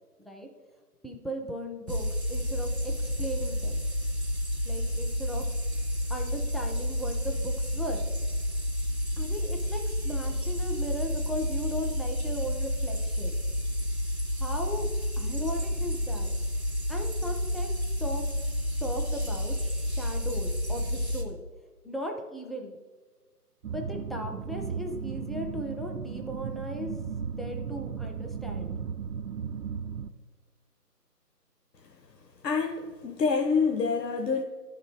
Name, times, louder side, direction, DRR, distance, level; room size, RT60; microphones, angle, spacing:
voice 1, 1.0-3.8 4.6-5.5 6.1-8.1 9.2-13.3 14.4-14.9 15.2-16.3 16.9-17.7 18.0-18.2 18.8-21.4 21.8-22.8 23.7-26.9 27.2-28.8, equal, ahead, 1 dB, 0.4 m, -37 dB
sound 1, 1.9-21.2, left 1 dB, 40° right, 0.8 m, -30 dB
sound 2, 23.6-30.1, right 6 dB, 75° right, 0.6 m, -35 dB
voice 2, 32.4-34.4, left 5 dB, 80° left, 4 dB, 0.8 m, -27 dB
10.5 x 3.8 x 4.7 m, 1.4 s
figure-of-eight pair, 175°, 49 cm